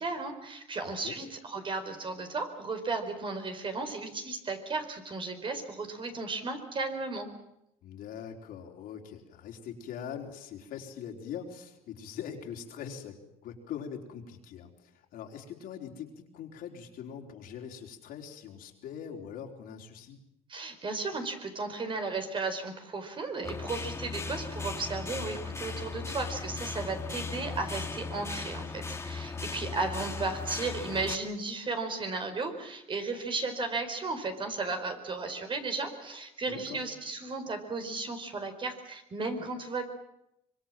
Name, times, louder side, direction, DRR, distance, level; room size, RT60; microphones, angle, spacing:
voice 1, 0.0-7.3 20.5-39.8, right 3 dB, 35° right, 6 dB, 4.6 m, -35 dB
voice 2, 0.8-1.2 7.8-20.2 29.3-29.8 36.5-36.8, left 8 dB, 70° left, 2 dB, 4.1 m, -42 dB
sound 1, 23.4-31.2, left 4 dB, 20° left, 2.0 m, -37 dB
25.0 x 23.5 x 7.6 m, 0.83 s
cardioid pair, 105°, 15 cm